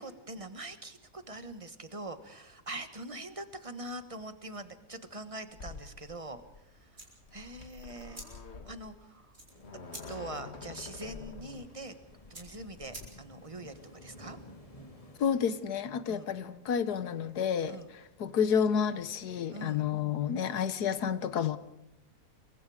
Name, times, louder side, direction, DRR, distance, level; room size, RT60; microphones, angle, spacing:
voice 1, 0.0-7.0 7.3-8.2 8.7-9.4 10.1-11.9 12.3-14.4 16.1-16.3 17.7-17.9 19.5-19.9, right 2 dB, 20° right, 10 dB, 1.4 m, -43 dB
sound 1, 5.5-13.1, left 5 dB, 45° left, 1.7 m, -48 dB
sound 2, 6.9-13.5, right 1 dB, 50° right, 5.2 m, -52 dB
sound 3, 9.5-15.4, left 1 dB, 20° left, 2.3 m, -53 dB
voice 2, 15.2-17.8 18.2-21.6, left 7 dB, 80° left, 14 dB, 1.6 m, -30 dB
28.0 x 23.0 x 5.0 m, 0.83 s
omnidirectional pair, 1.7 m